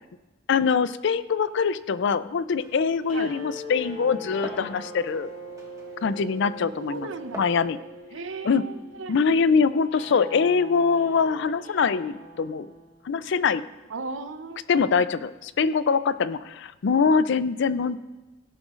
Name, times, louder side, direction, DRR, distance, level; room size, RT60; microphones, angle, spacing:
voice 1, 0.5-5.3 6.0-7.1 7.3-7.8 8.4-8.7 9.1-12.7 13.0-13.6 14.7-18.0, left 5 dB, 65° left, 15 dB, 0.4 m, -23 dB
Glass, 2.5-7.6, right 1 dB, 15° right, 1.6 m, -46 dB
sound 1, 3.0-13.3, equal, 45° left, 2.7 m, -42 dB
voice 2, 6.8-7.4 8.1-9.1 13.9-14.6, right 3 dB, 75° right, 9 dB, 0.8 m, -36 dB
17.0 x 11.0 x 2.5 m, 1.1 s
head